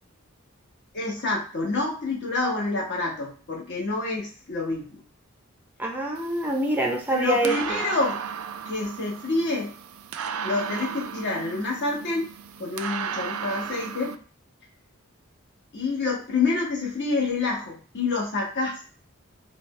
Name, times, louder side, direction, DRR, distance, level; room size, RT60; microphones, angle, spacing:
voice 1, 0.9-5.0 7.1-8.2 8.7-9.7 10.4-12.3 12.6-14.2 15.7-18.8, left 3 dB, 60° left, -2 dB, 1.3 m, -27 dB
voice 2, 5.8-7.8, right 1 dB, 10° right, 0 dB, 0.5 m, -25 dB
sound 1, 6.2-14.1, right 7 dB, 90° right, 0.4 m, -35 dB
4.2 x 2.3 x 3.1 m, 0.41 s
head